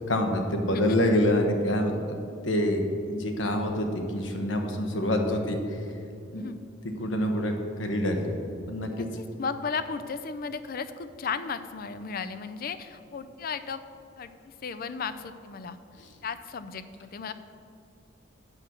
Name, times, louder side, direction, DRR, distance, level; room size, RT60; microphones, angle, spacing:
voice 1, 0.1-2.2 2.4-5.8 6.3-6.4 7.0-8.3 8.7-9.1 16.0-16.1, left 1 dB, 75° left, 4 dB, 1.1 m, -26 dB
voice 2, 0.7-1.0 6.3-6.6 8.9-9.0 9.4-13.8 14.2-14.3 14.6-15.8 16.2-17.3, left 5 dB, 50° left, 12 dB, 0.4 m, -35 dB
7.7 x 6.2 x 6.0 m, 2.6 s
head